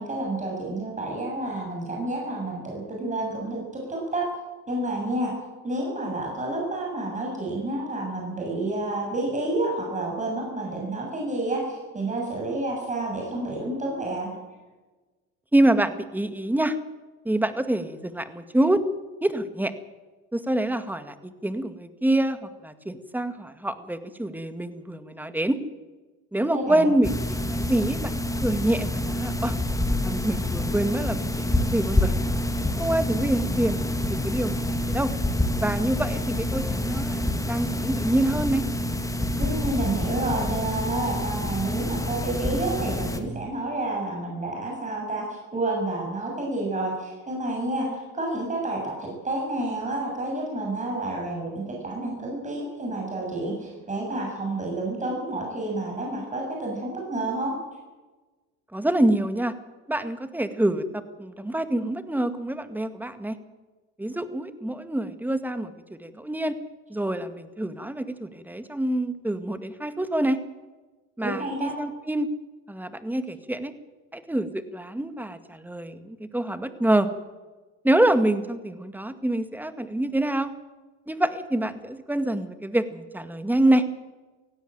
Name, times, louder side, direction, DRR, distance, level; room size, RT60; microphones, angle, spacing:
voice 1, 0.0-4.3 4.7-5.3 5.6-14.3 26.5-26.9 39.4-57.5 71.2-71.7, right 2 dB, 25° right, -2 dB, 7.4 m, -29 dB
voice 2, 15.5-16.8 17.3-18.8 19.2-19.7 20.3-25.6 26.3-29.6 30.0-32.1 32.8-35.1 35.6-37.2 37.5-38.7 58.7-59.5 59.9-63.4 64.0-65.7 66.0-66.6 66.9-70.4 71.2-72.3 72.7-73.7 74.1-77.1 77.8-80.5 81.1-83.8, right 1 dB, 5° right, 10 dB, 1.9 m, -26 dB
sound 1, 27.0-43.2, left 1 dB, 10° left, 2.6 m, -27 dB
17.5 x 16.0 x 9.3 m, 1.2 s
supercardioid pair, 90°, 31 cm